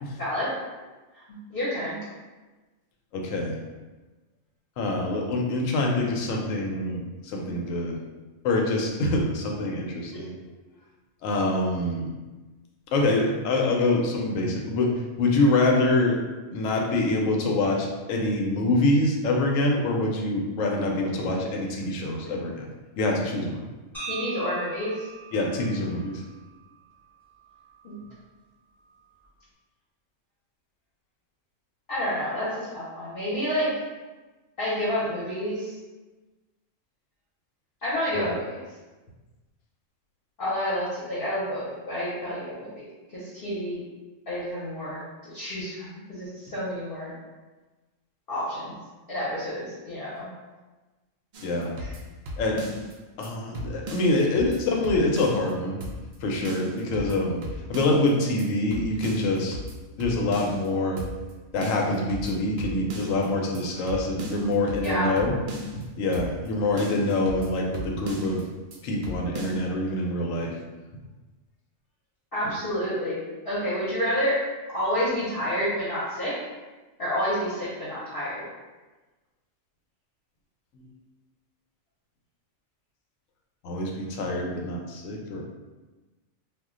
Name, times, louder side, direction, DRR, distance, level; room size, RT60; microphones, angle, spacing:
voice 1, 0.2-0.5 1.5-2.0 7.4-7.6 10.1-10.2 22.0-22.2 24.1-25.1 27.8-27.9 31.9-33.7 34.6-35.7 37.8-38.6 40.4-42.8 43.1-43.8 44.3-47.1 48.3-48.7 49.1-50.3 51.8-51.9 64.8-65.2 72.3-74.4 74.7-76.3 77.0-78.4, equal, 50° left, -9 dB, 0.8 m, -29 dB
voice 2, 3.1-3.6 4.8-8.0 8.4-10.3 11.2-12.1 12.9-16.2 16.5-22.7 23.0-23.6 25.3-26.2 38.1-38.3 51.4-51.7 52.4-52.6 53.2-55.8 56.2-57.4 57.7-59.6 60.0-61.0 61.5-65.4 66.0-68.4 68.8-70.6 80.8-80.9 83.6-85.4, left 2 dB, 80° left, 0 dB, 0.9 m, -25 dB
sound 1, 23.9-28.0, right 4 dB, ahead, 0.8 m, -41 dB
sound 2, 51.3-52.9 53.2-53.3 53.5-55.5 55.8-56.2 56.4-58.1 58.4-58.5 58.7-60.7 61.0-61.3 61.6-63.3 63.5-63.6 63.9-65.8 66.1-66.5 66.8-68.4 68.7-68.8 69.0-69.6, left 1 dB, 80° right, 0.4 m, -37 dB
2.3 x 2.1 x 3.6 m, 1.2 s
omnidirectional pair, 1.3 m